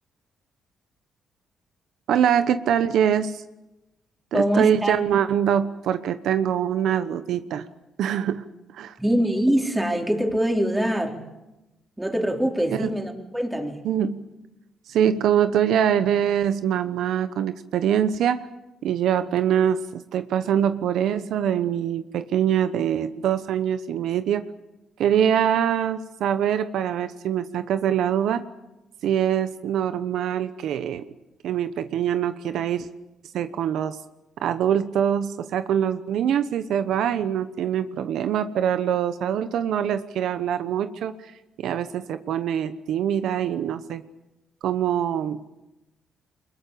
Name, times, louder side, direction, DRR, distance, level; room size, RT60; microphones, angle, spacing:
voice 1, 2.1-3.4 4.3-7.6 8.0-8.5 8.7-9.0 12.7-12.9 13.8-14.2 14.9-18.5 18.8-24.4 25.0-28.4 29.0-31.0 31.4-32.9 33.3-34.0 34.4-41.3 41.6-44.0 44.6-45.4, right 9 dB, 75° right, 11 dB, 1.0 m, -24 dB
voice 2, 4.3-4.9 9.0-11.2 12.0-13.8, equal, 10° right, 2 dB, 4.1 m, -23 dB
23.5 x 21.5 x 8.5 m, 0.99 s
cardioid pair, 90°, 0 cm